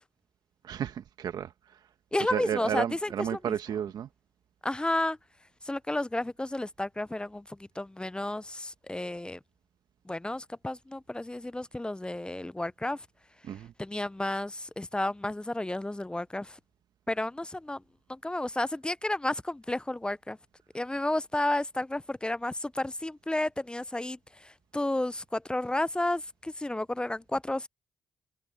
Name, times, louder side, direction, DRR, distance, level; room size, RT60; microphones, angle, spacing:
voice 1, 0.6-1.5 2.3-4.1 13.4-13.7, right 9 dB, 70° right, 1.4 m, -32 dB
voice 2, 2.1-3.5 4.6-5.2 5.6-9.4 10.1-13.0 13.8-16.6 17.1-17.8 18.1-20.4 20.7-27.7, left 1 dB, 10° left, 0.6 m, -32 dB
supercardioid pair, 50°, 7 cm